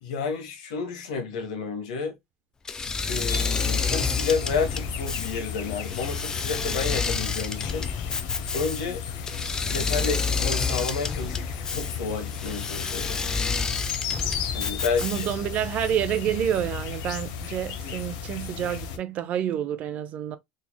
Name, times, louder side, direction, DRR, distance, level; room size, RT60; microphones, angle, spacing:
voice 1, 0.0-2.1 3.0-7.9 8.5-9.0 9.5-11.4 11.7-13.2 14.5-15.3, left 5 dB, 85° left, 1.4 m, -30 dB
Engine / Mechanisms, 2.7-15.5, left 4 dB, 15° left, 0.4 m, -29 dB
sound 1, 3.3-19.0, left 7 dB, 70° left, 0.8 m, -34 dB
voice 2, 15.0-20.4, right 10 dB, 40° right, 0.5 m, -28 dB
3.9 x 3.2 x 2.2 m
supercardioid pair, 145°, 4 cm